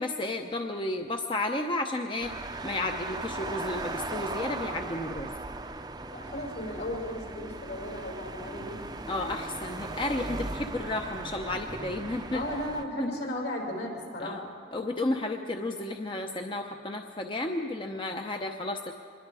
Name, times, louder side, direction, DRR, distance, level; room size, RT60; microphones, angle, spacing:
voice 1, 0.0-2.3 2.6-5.3 9.1-12.4 13.0-13.1 14.2-14.5 14.7-18.9, left 2 dB, 25° left, 4 dB, 0.7 m, -32 dB
sound 1, 2.2-12.8, right 2 dB, 20° right, 0.6 m, -38 dB
voice 2, 6.1-8.8 12.3-14.4, left 1 dB, 70° left, -1 dB, 5.8 m, -35 dB
26.0 x 21.5 x 4.8 m, 2.6 s
head